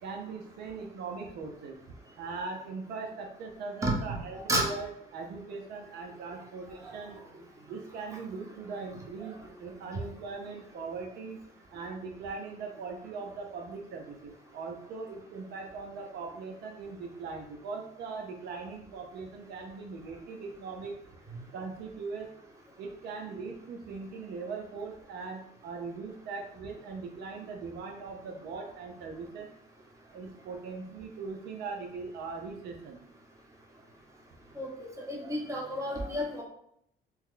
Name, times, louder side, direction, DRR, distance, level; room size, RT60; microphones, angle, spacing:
voice 1, 0.0-1.8 2.2-7.2 7.7-11.4 11.7-20.9 21.5-22.3 22.8-29.5 30.1-33.0, right 4 dB, 70° right, 2 dB, 0.6 m, -40 dB
voice 2, 35.0-36.4, right 1 dB, 20° right, -1 dB, 0.9 m, -30 dB
2.9 x 2.2 x 3.7 m, 0.71 s
cardioid pair, 110°, 17 cm